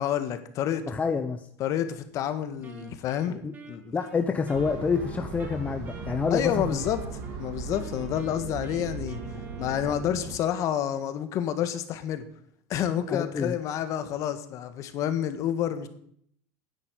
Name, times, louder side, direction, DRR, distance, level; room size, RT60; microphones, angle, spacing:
voice 1, 0.0-0.8 1.6-3.9 6.3-7.0 7.4-9.2 9.6-12.2 12.7-15.9, left 10 dB, 45° left, 10 dB, 1.7 m, -29 dB
voice 2, 0.9-1.5 3.4-3.5 3.9-6.8 13.1-13.6, left 5 dB, 20° left, 7 dB, 0.9 m, -28 dB
Wind instrument woodwind instrument, 2.6-7.4 7.7-10.3, right 4 dB, 25° right, 3.0 m, -47 dB
sound 1, 4.5-10.4, right 4 dB, 60° right, 3.0 m, -37 dB
10.0 x 8.9 x 9.2 m, 0.66 s
supercardioid pair, 125°, 7 cm